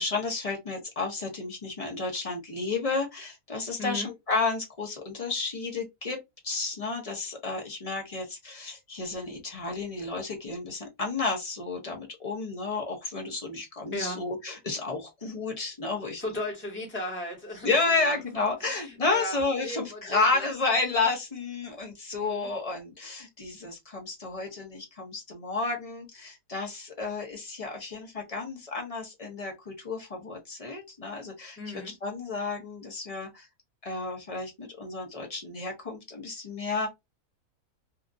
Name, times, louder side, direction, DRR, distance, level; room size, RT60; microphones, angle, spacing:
voice 1, 0.0-6.2 6.4-16.2 17.6-33.5 33.8-36.9, left 3 dB, 35° left, 0.5 m, -31 dB
voice 2, 16.2-20.5 21.6-21.8 22.1-22.5 31.6-31.9, left 1 dB, 10° left, 1.0 m, -37 dB
2.8 x 2.4 x 2.5 m
omnidirectional pair, 1.6 m